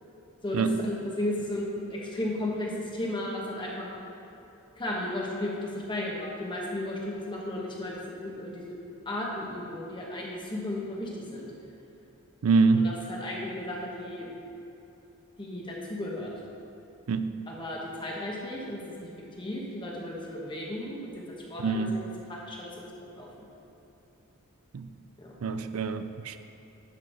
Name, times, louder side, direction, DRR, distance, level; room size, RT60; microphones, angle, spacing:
voice 1, 0.4-3.9 4.8-8.7 9.0-11.5 12.7-14.3 15.4-16.3 17.5-18.8 19.4-23.5 25.2-25.3, left 1 dB, 20° left, -3 dB, 1.3 m, -34 dB
voice 2, 12.4-12.9 17.1-17.3 21.6-22.0 24.7-24.9 25.4-26.4, right 4 dB, 75° right, 10 dB, 0.5 m, -25 dB
11.0 x 6.2 x 4.5 m, 2.9 s
head